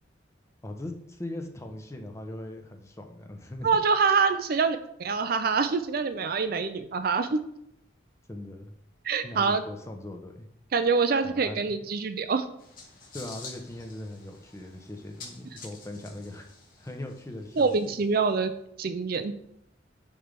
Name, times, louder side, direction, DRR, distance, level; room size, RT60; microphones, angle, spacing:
voice 1, 0.6-3.7 8.3-8.7 9.2-10.5 11.2-11.8 13.1-16.5 16.8-17.8, left 1 dB, 15° left, 4 dB, 0.8 m, -40 dB
voice 2, 3.6-7.5 9.0-9.6 10.7-12.4 17.6-18.5 18.8-19.3, right 5 dB, 50° right, 9 dB, 0.5 m, -25 dB
sound 1, 12.6-18.3, left 4 dB, 45° left, 1.9 m, -48 dB
8.6 x 3.3 x 5.2 m, 0.76 s
head